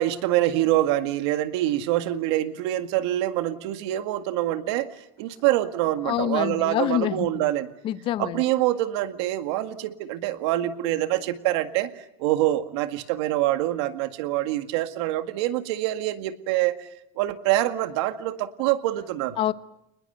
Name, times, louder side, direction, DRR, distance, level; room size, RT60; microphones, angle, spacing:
voice 1, 0.0-4.9 5.2-7.7 8.2-16.9 17.2-19.4, right 14 dB, 85° right, 1.9 m, -25 dB
voice 2, 6.0-7.4 7.8-8.4 19.4-19.5, left 12 dB, 40° left, 1.0 m, -26 dB
29.0 x 21.0 x 8.0 m
cardioid pair, 160°, 14 cm